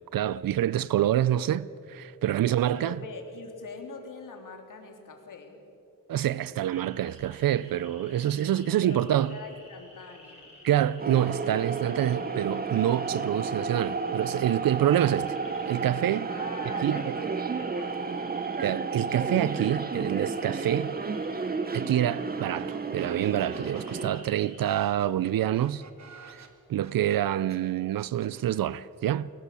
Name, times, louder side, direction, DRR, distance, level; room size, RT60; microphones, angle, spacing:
voice 1, 0.1-3.0 6.1-9.4 10.6-15.4 15.7-16.3 16.8-17.1 18.6-20.9 21.7-25.8 26.3-26.4 26.7-29.3, right 11 dB, 85° right, 0.5 m, -27 dB
voice 2, 2.7-5.6 8.8-10.6 16.3-18.5, left 4 dB, 70° left, 3.2 m, -43 dB
sound 1, 6.7-24.7, left 1 dB, 20° left, 6.4 m, -52 dB
sound 2, 11.0-24.1, right 4 dB, 25° right, 0.8 m, -32 dB
sound 3, 22.6-22.7 23.0-27.6 28.0-28.5, right 5 dB, 55° right, 1.8 m, -51 dB
22.5 x 18.5 x 8.4 m
wide cardioid pair, 175°, 33 cm